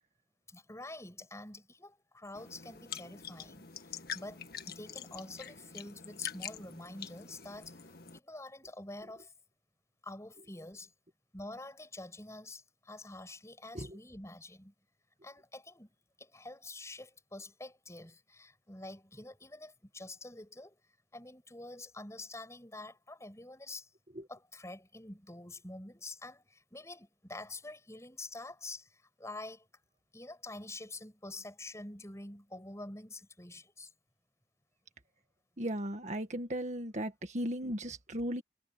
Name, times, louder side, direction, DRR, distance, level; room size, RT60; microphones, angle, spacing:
voice 1, 0.5-9.3 10.0-10.9 11.3-14.7 15.2-15.9 16.2-20.8 21.1-23.9 24.3-29.7 30.1-33.9, left 2 dB, 15° left, 7.5 m, -47 dB
sound 1, 2.3-8.2, left 8 dB, 60° left, 1.9 m, -45 dB
voice 2, 35.6-38.4, equal, 40° right, 1.8 m, -36 dB
head